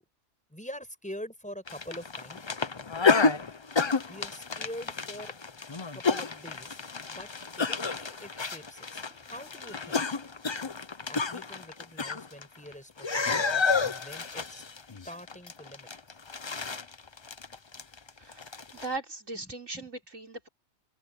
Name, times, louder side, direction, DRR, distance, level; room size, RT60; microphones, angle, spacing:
voice 1, 0.5-2.4 4.1-5.3 5.9-6.8 7.1-7.3 7.6-10.0 11.1-14.6 15.0-16.2 19.4-19.9, equal, 5° left, 6.1 m, -45 dB
sound 1, 1.7-12.7 13.0-18.9, left 4 dB, 30° left, 0.6 m, -30 dB
voice 2, 18.2-18.5 18.7-20.5, right 3 dB, 80° right, 6.0 m, -38 dB
open air
omnidirectional pair, 1.3 m